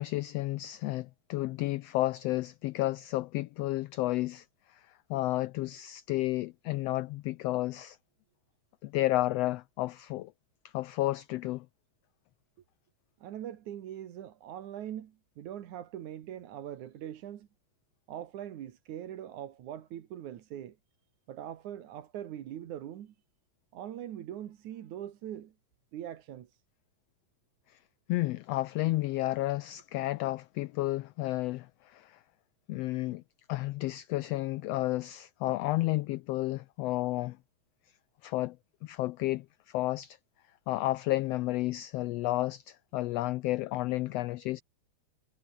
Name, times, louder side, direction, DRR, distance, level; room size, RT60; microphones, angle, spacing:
voice 1, 0.0-8.0 8.8-10.3 10.7-11.7 27.7-27.8 28.1-32.2 32.7-33.2 33.5-37.4 38.2-38.6 38.8-40.2 40.7-44.6, left 17 dB, 85° left, 1.4 m, -32 dB
voice 2, 13.2-17.5 18.1-20.8 21.3-23.1 23.7-25.5 25.9-26.6, right 11 dB, 80° right, 2.9 m, -42 dB
omnidirectional pair, 3.4 m